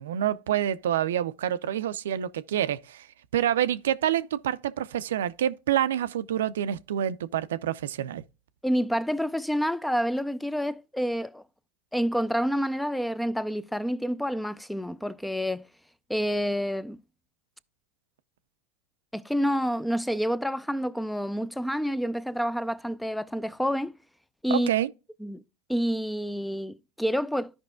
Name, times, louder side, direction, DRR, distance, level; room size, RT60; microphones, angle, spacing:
voice 1, 0.0-3.1 3.3-8.2 24.5-24.9, right 11 dB, 80° right, 0.4 m, -27 dB
voice 2, 8.6-11.4 11.9-15.7 16.1-17.0 19.1-23.9 24.4-24.7 25.2-25.4 25.7-27.5, equal, 5° left, 0.4 m, -28 dB
13.5 x 5.3 x 2.2 m
hypercardioid pair, 95°, 0 cm